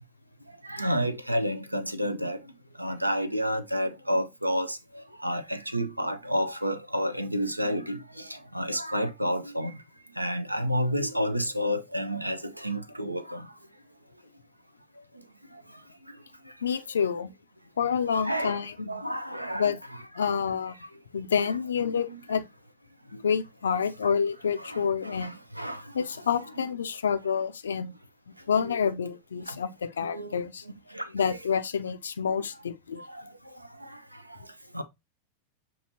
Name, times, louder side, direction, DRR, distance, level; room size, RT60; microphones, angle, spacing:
voice 1, 0.7-2.4 2.8-4.8 5.2-8.0 8.5-9.7 10.2-13.4 18.2-19.7 21.4-21.5 22.1-22.2 24.6-24.8 25.0-25.3 25.6-25.8 26.6-26.7 28.6-28.8 30.1-30.4 30.9-31.0 34.7-34.8, equal, 85° right, 0.4 m, -29 dB
voice 2, 16.6-17.3 17.8-18.9 19.5-19.8 20.2-20.7 21.1-22.4 23.2-25.3 25.9-27.9 28.5-30.6 31.1-33.0, left 6 dB, 70° left, 0.4 m, -28 dB
6.5 x 2.4 x 2.6 m
figure-of-eight pair, 90°, 0 cm